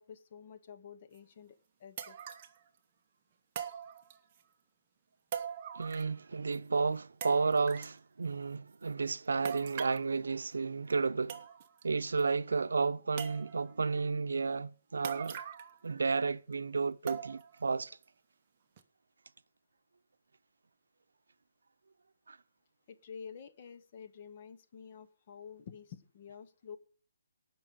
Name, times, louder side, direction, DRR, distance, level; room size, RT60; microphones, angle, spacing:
voice 1, 0.0-2.2 22.9-26.8, left 7 dB, 25° left, 0.8 m, -50 dB
sound 1, 1.2-1.3 2.0-2.6 3.5-4.4 5.3-6.2 6.5-6.6 7.2-8.0 9.4-10.1 10.9-11.0 11.3-11.8 12.2-12.3 13.2-13.8 15.0-15.8 16.1-16.2 17.1-17.6 18.0-18.1 18.8-18.9, right 8 dB, 20° right, 0.8 m, -42 dB
voice 2, 5.7-11.4 11.8-15.4 15.8-18.0 22.3-22.4, right 4 dB, 75° right, 0.7 m, -32 dB
18.5 x 6.1 x 5.1 m
hypercardioid pair, 180°, 0 cm